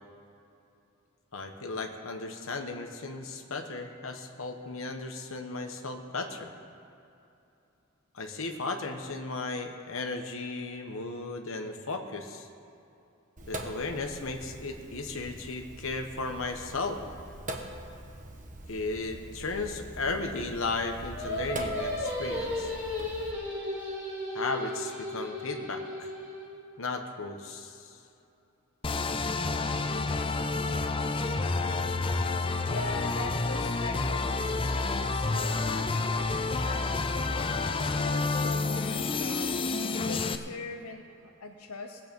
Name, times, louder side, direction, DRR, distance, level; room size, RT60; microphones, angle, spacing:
voice 1, 1.3-6.5 8.1-12.5 13.5-17.0 18.7-22.7 24.3-26.1 26.8-28.0 32.1-32.2, left 3 dB, 65° left, 4 dB, 1.1 m, -35 dB
Sink (filling or washing), 13.4-23.3, right 1 dB, 35° right, 1.1 m, -43 dB
Singing, 21.1-26.5, left 1 dB, 10° right, 3.5 m, -35 dB
sound 1, 28.8-40.4, left 3 dB, 25° left, 0.5 m, -29 dB
voice 2, 32.3-39.5 40.0-42.0, left 3 dB, 85° left, 3 dB, 0.8 m, -42 dB
19.0 x 7.8 x 5.3 m, 2.8 s
head